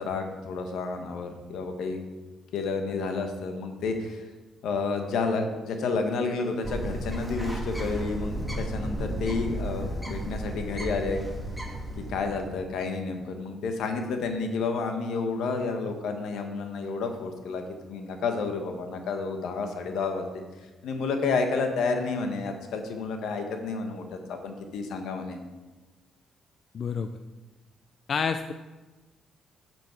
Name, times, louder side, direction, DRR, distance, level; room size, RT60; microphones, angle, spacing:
voice 1, 0.0-2.0 2.5-4.3 4.6-11.3 12.1-20.4 20.8-25.4, left 4 dB, 80° left, 5 dB, 1.2 m, -30 dB
Bird, 6.6-12.6, right 1 dB, 5° left, 1.9 m, -33 dB
voice 2, 26.7-27.1 28.1-28.5, left 6 dB, 50° left, 9 dB, 0.4 m, -28 dB
10.5 x 6.1 x 4.5 m, 1.2 s
cardioid pair, 90°, 0 cm